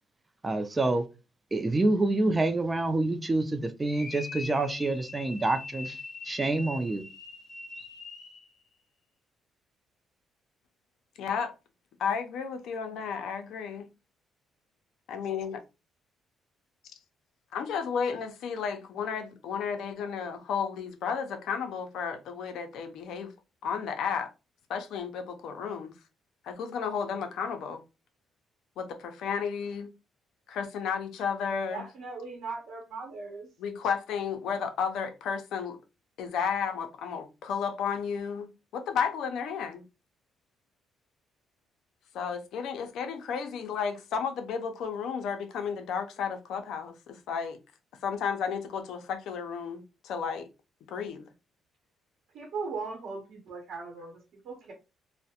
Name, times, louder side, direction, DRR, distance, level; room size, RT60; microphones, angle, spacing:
voice 1, 0.4-1.0 1.5-6.0 6.2-7.0, right 2 dB, 25° right, 0.4 m, -27 dB
sound 1, 3.8-8.5, left 3 dB, 45° left, 0.7 m, -42 dB
voice 2, 11.2-11.5 12.0-13.8 15.1-15.6 17.5-23.3 23.6-24.3 24.7-25.9 26.4-27.8 28.8-29.9 30.5-31.8 33.6-35.8 36.2-39.8 42.1-47.6 48.0-50.5 50.9-51.3, left 6 dB, 80° left, 0.5 m, -33 dB
voice 3, 31.7-33.5 52.3-54.7, right 4 dB, 75° right, 0.8 m, -38 dB
2.3 x 2.1 x 2.8 m
cardioid pair, 90°, 0 cm